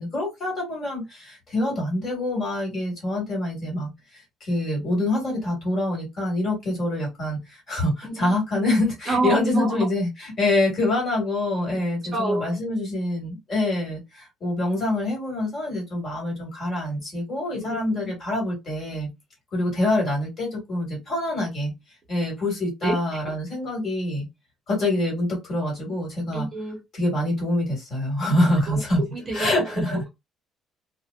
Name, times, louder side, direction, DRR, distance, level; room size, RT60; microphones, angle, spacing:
voice 1, 0.0-19.1 19.5-21.7 22.1-24.3 24.7-26.5 26.9-30.0, left 1 dB, 35° left, 1.6 m, -25 dB
voice 2, 9.1-9.7 12.1-12.5 22.8-23.0 26.3-26.8 28.7-28.8 29.1-29.5 29.9-30.1, right 2 dB, 25° right, 0.6 m, -27 dB
3.0 x 2.1 x 2.3 m
cardioid pair, 165°, 0 cm